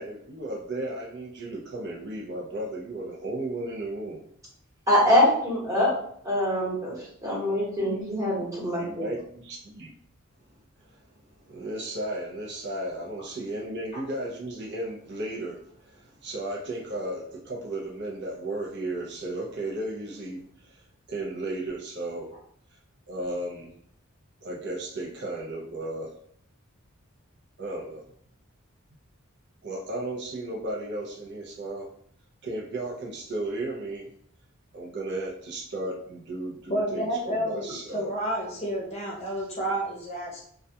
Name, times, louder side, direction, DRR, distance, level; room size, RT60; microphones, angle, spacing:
voice 1, 0.0-4.3 8.8-9.9 11.5-20.8 21.1-22.3 23.1-23.7 24.4-26.1 27.6-28.0 29.6-31.9 32.4-34.1 34.7-38.1, right 1 dB, 55° right, -3 dB, 0.5 m, -34 dB
voice 2, 4.9-5.9 6.2-6.9 7.2-9.1, left 1 dB, 15° right, -6 dB, 1.0 m, -24 dB
voice 3, 36.7-40.4, right 1 dB, 30° left, -3 dB, 0.7 m, -30 dB
2.3 x 2.2 x 2.7 m, 0.66 s
head